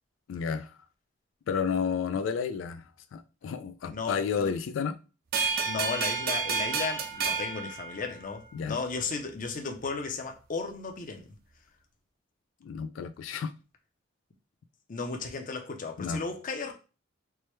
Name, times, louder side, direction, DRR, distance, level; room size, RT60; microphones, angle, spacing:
voice 1, 0.3-0.7 1.5-2.8 3.1-5.0 8.5-8.8 12.6-13.5 16.0-16.2, left 6 dB, 90° left, 0.3 m, -31 dB
voice 2, 3.9-4.5 5.6-11.3 14.9-16.7, left 4 dB, 45° left, 0.6 m, -35 dB
sound 1, 5.3-8.6, right 5 dB, 55° right, 0.5 m, -31 dB
4.6 x 2.2 x 3.1 m
head